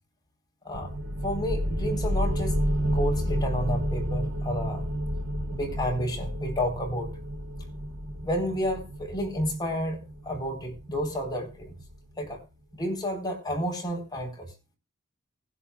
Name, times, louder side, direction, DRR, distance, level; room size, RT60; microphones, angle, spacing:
sound 1, 0.7-12.1, equal, 75° right, 1.5 m, -31 dB
voice 1, 1.2-2.5 2.8-4.9 5.5-7.1 8.2-10.0 10.3-11.7 12.2-12.4 12.8-14.5, equal, 20° left, 4.1 m, -30 dB
20.0 x 11.0 x 2.3 m
head